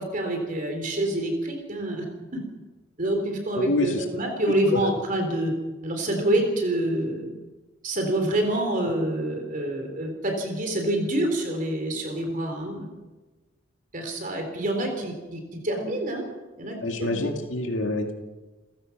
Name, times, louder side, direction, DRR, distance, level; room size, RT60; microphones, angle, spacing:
voice 1, 0.0-2.1 2.3-2.4 3.0-5.5 5.8-7.3 7.8-12.9 13.9-16.2 16.6-17.3, right 1 dB, 40° right, 3 dB, 3.8 m, -27 dB
voice 2, 16.8-18.1, left 2 dB, 70° left, 3 dB, 2.1 m, -26 dB
29.5 x 16.0 x 6.0 m, 1.2 s
head